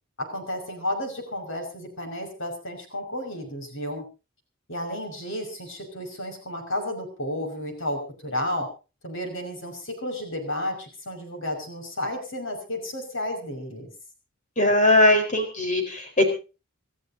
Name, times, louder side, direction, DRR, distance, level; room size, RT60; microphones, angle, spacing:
voice 1, 0.2-4.0 4.7-8.7 9.0-13.9, left 1 dB, 60° left, 5 dB, 5.9 m, -32 dB
voice 2, 14.6-16.2, left 1 dB, 35° left, 4 dB, 4.5 m, -20 dB
28.0 x 13.5 x 2.8 m, 0.32 s
head